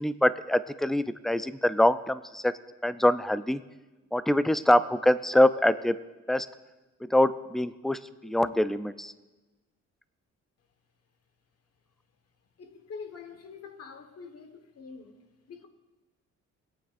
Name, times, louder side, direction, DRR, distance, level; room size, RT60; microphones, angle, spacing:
voice 1, 0.0-2.5 2.8-3.6 4.1-5.9 6.3-6.5 7.0-9.1, left 1 dB, ahead, 0.4 m, -24 dB
voice 2, 12.6-15.2 15.5-15.7, left 5 dB, 55° left, 1.4 m, -45 dB
21.5 x 8.8 x 2.5 m
cardioid pair, 90°, 30 cm